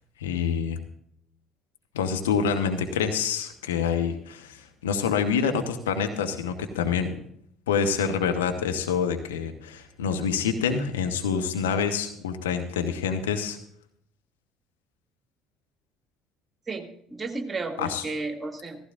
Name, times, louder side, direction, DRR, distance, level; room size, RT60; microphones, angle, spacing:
voice 1, 0.2-0.8 1.9-7.1 7.7-13.6 17.8-18.0, left 6 dB, 75° left, 5 dB, 1.0 m, -27 dB
voice 2, 16.7-18.8, right 3 dB, 20° right, 4 dB, 2.3 m, -33 dB
16.0 x 15.0 x 2.5 m, 0.68 s
figure-of-eight pair, 55°, 0 cm